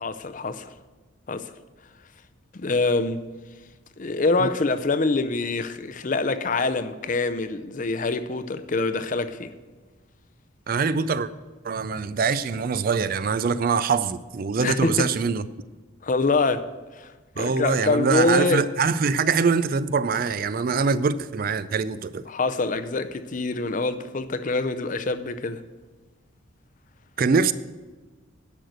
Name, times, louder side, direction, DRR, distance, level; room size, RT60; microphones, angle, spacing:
voice 1, 0.0-0.7 1.3-1.5 2.5-3.3 4.0-9.5 14.6-15.1 16.0-16.7 16.9-18.6 22.3-25.6, left 3 dB, 40° left, 0.5 m, -25 dB
voice 2, 10.7-11.3 11.6-15.4 17.4-22.2 27.2-27.5, right 5 dB, 45° right, 0.4 m, -23 dB
10.5 x 6.5 x 7.9 m
head